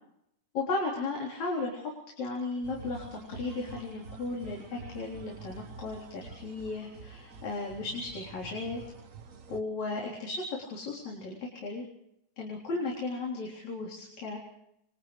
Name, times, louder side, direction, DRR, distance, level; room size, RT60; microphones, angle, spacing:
voice 1, 0.5-8.8 9.5-11.8 12.4-14.4, left 3 dB, 70° left, -3 dB, 5.2 m, -35 dB
sound 1, 2.6-9.6, right 4 dB, 60° right, 0.8 m, -47 dB
28.5 x 28.0 x 3.3 m, 0.81 s
omnidirectional pair, 3.4 m